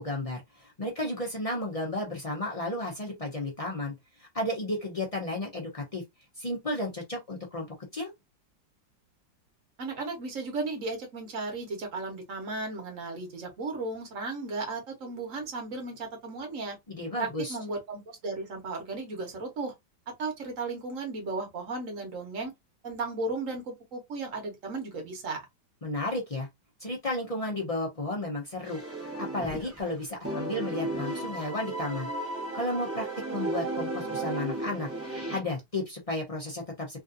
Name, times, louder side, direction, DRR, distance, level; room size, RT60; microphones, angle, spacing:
voice 1, 0.0-6.0 6.4-7.7 7.9-8.1 16.9-17.6 25.8-26.5 26.8-32.1 32.5-37.0, left 1 dB, 60° left, 0.3 m, -33 dB
voice 2, 9.8-16.8 17.2-19.7 20.2-22.5 22.8-25.4, right 3 dB, 50° right, 1.4 m, -35 dB
sound 1, 28.6-29.9 30.2-35.4, right 2 dB, 20° right, 0.4 m, -34 dB
3.3 x 2.6 x 2.5 m
omnidirectional pair, 2.0 m